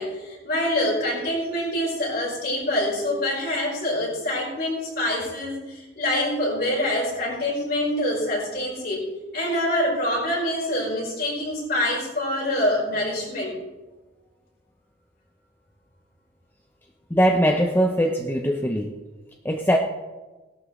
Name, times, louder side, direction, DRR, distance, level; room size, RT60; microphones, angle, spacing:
voice 1, 0.0-9.1 9.3-13.6, left 1 dB, 50° left, -3 dB, 4.7 m, -25 dB
voice 2, 17.1-18.9 19.4-19.8, equal, 10° left, 2 dB, 0.7 m, -21 dB
17.5 x 12.0 x 3.2 m, 1.2 s
head